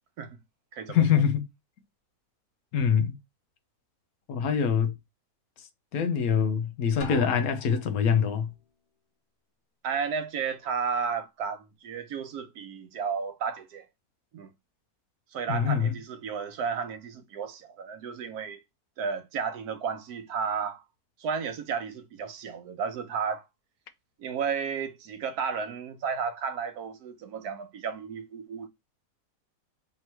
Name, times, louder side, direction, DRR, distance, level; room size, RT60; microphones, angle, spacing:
voice 1, 0.9-1.4 2.7-3.1 4.3-4.9 5.9-8.5 15.5-16.0, left 7 dB, 75° left, 1.1 m, -24 dB
Drum, 7.0-8.2, left 5 dB, 55° left, 0.6 m, -41 dB
voice 2, 9.8-13.9 14.3-14.5 15.3-18.6 19.0-20.8 21.2-23.4 24.2-28.7, right 6 dB, 85° right, 1.3 m, -33 dB
3.5 x 2.9 x 4.3 m
omnidirectional pair, 1.6 m